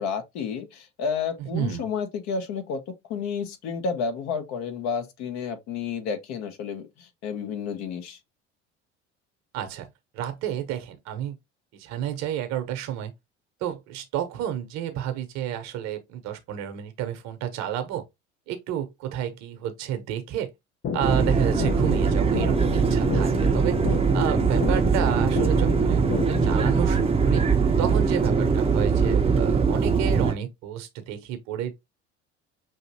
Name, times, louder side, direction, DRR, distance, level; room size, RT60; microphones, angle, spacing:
voice 1, 0.0-2.8 3.1-8.2, left 6 dB, 50° left, 1.1 m, -31 dB
voice 2, 1.5-1.8 9.5-9.9 10.1-11.4 11.7-13.1 13.6-18.0 18.5-20.5 20.9-23.8 24.1-27.4 27.8-31.7, right 10 dB, 50° right, 1.0 m, -30 dB
sound 1, 20.8-26.8, left 6 dB, 30° left, 0.7 m, -32 dB
sound 2, 21.0-30.3, right 5 dB, 15° right, 0.8 m, -22 dB
5.6 x 3.0 x 2.9 m
figure-of-eight pair, 60°, 35 cm